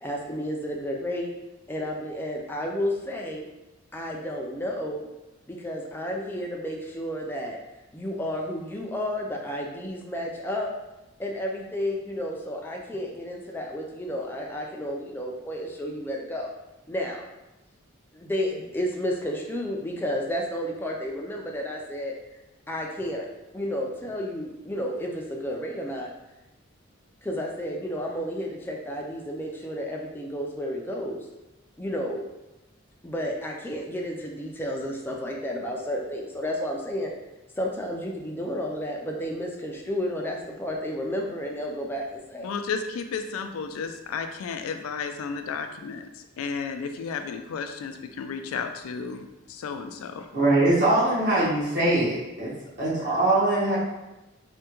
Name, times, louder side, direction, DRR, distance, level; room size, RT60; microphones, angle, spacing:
voice 1, 0.0-1.3 1.7-3.5 3.9-5.1 5.5-7.6 7.9-10.7 11.2-16.5 16.9-17.2 18.1-22.1 22.7-23.3 23.5-26.1 27.2-31.3 31.8-32.2 33.0-37.1 37.6-42.5, equal, 10° left, -1 dB, 0.3 m, -31 dB
voice 2, 42.4-50.2, left 5 dB, 90° left, 7 dB, 0.3 m, -33 dB
voice 3, 50.3-52.5 52.8-53.8, right 2 dB, 50° right, -9 dB, 1.0 m, -22 dB
3.4 x 2.2 x 2.9 m, 1.0 s
head